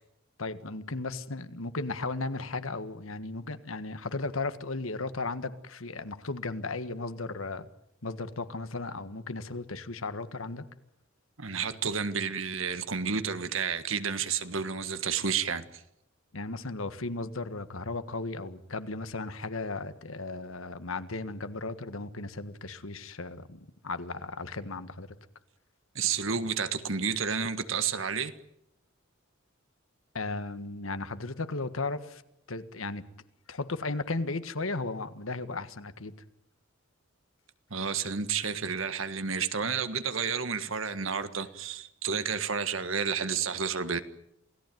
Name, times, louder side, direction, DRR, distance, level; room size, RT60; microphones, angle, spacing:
voice 1, 0.4-7.7 8.0-10.7 16.3-25.2 30.1-32.2 32.5-33.0 33.5-36.1, left 3 dB, 80° left, 1.6 m, -35 dB
voice 2, 11.4-15.8 25.9-28.3 37.7-44.0, right 6 dB, 70° right, 1.6 m, -31 dB
28.0 x 17.5 x 9.2 m
head